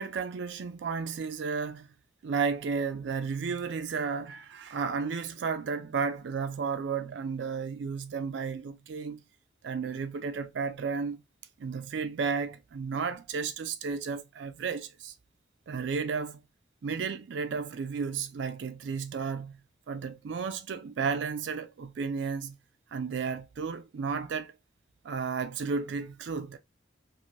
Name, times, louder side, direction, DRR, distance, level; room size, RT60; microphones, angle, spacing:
voice 1, 0.0-1.9 2.2-9.2 9.6-11.2 11.6-15.1 15.7-16.4 16.8-19.6 19.9-22.6 22.9-24.5 25.0-26.6, right 5 dB, 75° right, 0.4 m, -33 dB
3.1 x 2.5 x 2.5 m
head